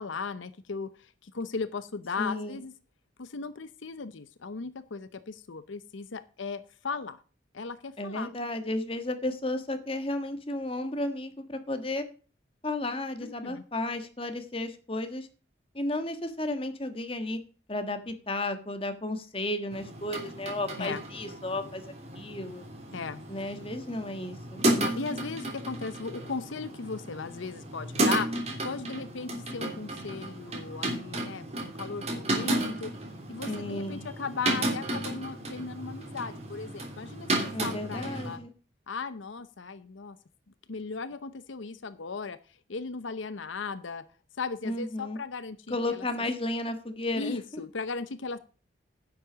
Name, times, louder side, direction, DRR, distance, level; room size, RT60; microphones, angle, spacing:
voice 1, 0.0-2.7 3.2-7.2 7.5-8.3 13.2-13.6 20.8-21.0 22.9-23.5 24.8-32.9 33.3-38.4 38.9-40.2 40.7-42.4 42.7-44.0 44.4-46.0 47.1-48.4, left 4 dB, 80° left, 13 dB, 0.7 m, -37 dB
voice 2, 2.2-2.6 8.0-12.0 12.6-15.3 15.7-17.4 17.7-21.8 22.1-22.6 23.3-24.6 33.5-34.0 37.5-38.5 44.6-45.2 45.7-47.4, left 2 dB, 30° left, 7 dB, 1.5 m, -33 dB
sound 1, 19.7-38.4, right 1 dB, 35° right, 3.2 m, -33 dB
10.5 x 7.5 x 6.1 m, 0.38 s
head